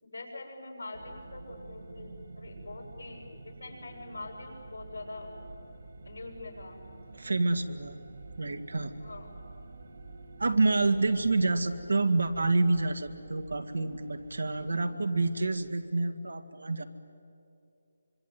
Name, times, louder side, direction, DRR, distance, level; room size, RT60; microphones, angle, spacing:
voice 1, 0.0-5.3 6.0-6.8 9.0-9.3, left 2 dB, 90° left, 2 dB, 7.7 m, -44 dB
sound 1, 0.9-15.7, right 3 dB, 65° right, 1.9 m, -48 dB
voice 2, 7.1-8.0 8.4-8.9 10.4-16.8, right 3 dB, 85° right, 7 dB, 2.2 m, -28 dB
25.5 x 25.0 x 9.4 m, 2.6 s
figure-of-eight pair, 165°, 0 cm